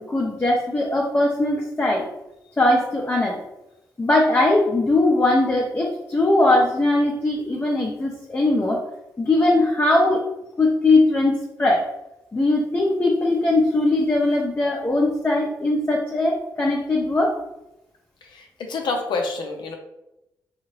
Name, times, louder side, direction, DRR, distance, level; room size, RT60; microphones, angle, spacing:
voice 1, 0.0-2.1 2.6-3.4 4.0-8.8 9.2-10.2 10.6-11.8 12.3-17.3, left 2 dB, 25° left, -2 dB, 0.6 m, -20 dB
voice 2, 18.2-19.7, left 3 dB, 70° left, 3 dB, 0.5 m, -28 dB
2.8 x 2.4 x 3.0 m, 0.90 s
supercardioid pair, 50°, 8 cm